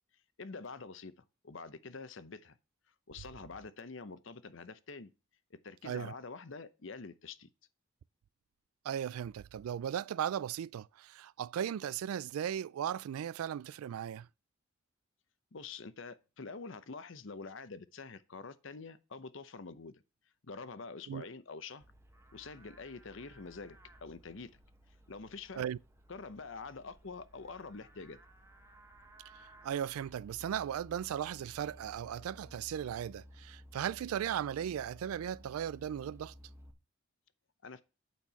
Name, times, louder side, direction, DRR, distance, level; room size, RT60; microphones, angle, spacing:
voice 1, 0.4-2.6 3.1-5.1 5.6-7.5 15.5-20.0 20.4-21.8 22.3-24.5 25.1-25.6 26.1-28.2 37.6-37.8, left 4 dB, 60° left, 0.7 m, -46 dB
voice 2, 8.8-14.3 21.1-21.3 25.6-25.8 29.6-36.3, right 9 dB, 90° right, 0.3 m, -37 dB
Livestock farm animals working animals, 21.8-36.7, equal, 10° right, 1.0 m, -57 dB
8.3 x 4.5 x 5.7 m
head